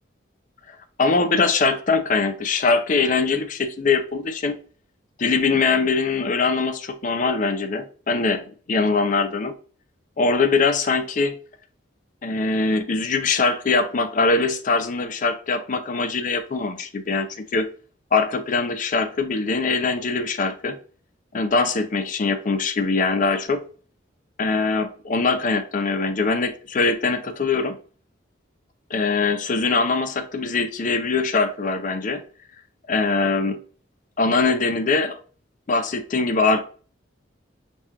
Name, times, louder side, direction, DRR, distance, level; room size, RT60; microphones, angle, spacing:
voice 1, 1.0-4.5 5.2-9.5 10.2-11.4 12.2-17.7 18.1-20.8 21.3-23.6 24.4-27.8 28.9-32.2 32.9-33.6 34.2-35.2 35.7-36.6, left 4 dB, 40° left, 0.5 m, -22 dB
5.3 x 2.4 x 2.8 m
head